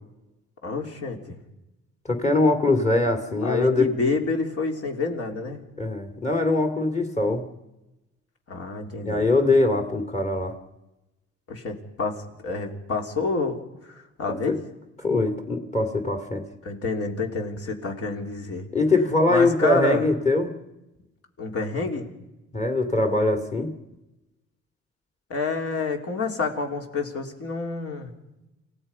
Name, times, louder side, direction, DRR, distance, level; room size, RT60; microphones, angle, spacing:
voice 1, 0.6-1.4 3.4-5.6 8.5-9.3 11.5-13.6 13.9-14.5 16.6-18.7 19.3-20.1 21.4-22.1 25.3-28.1, left 4 dB, 50° left, 3 dB, 3.7 m, -28 dB
voice 2, 2.1-3.9 5.8-7.4 9.1-10.6 14.3-14.6 15.0-16.4 18.7-20.5 22.5-23.7, left 2 dB, 25° left, 5 dB, 2.5 m, -22 dB
28.5 x 16.5 x 5.6 m, 0.96 s
cardioid pair, 115°, 29 cm